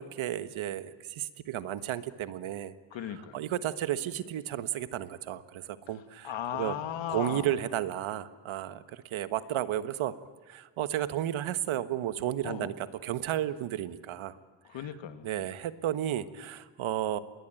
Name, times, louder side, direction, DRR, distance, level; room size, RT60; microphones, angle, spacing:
voice 1, 0.0-2.7 3.3-6.8 7.1-10.1 10.5-14.4 15.2-17.2, right 12 dB, 80° right, 12 dB, 1.4 m, -33 dB
voice 2, 2.9-3.4 6.2-7.6 12.4-12.7 14.6-15.3, left 10 dB, 70° left, 10 dB, 1.9 m, -36 dB
27.5 x 21.0 x 9.1 m, 1.4 s
cardioid pair, 165°, 47 cm